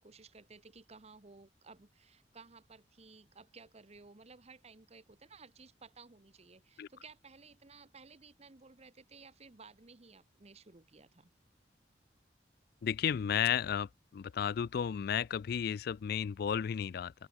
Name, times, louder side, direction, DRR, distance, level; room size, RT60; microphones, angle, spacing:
voice 1, 0.0-11.3, right 4 dB, 40° right, 1.1 m, -56 dB
voice 2, 12.8-17.1, left 8 dB, 60° left, 0.3 m, -33 dB
open air
head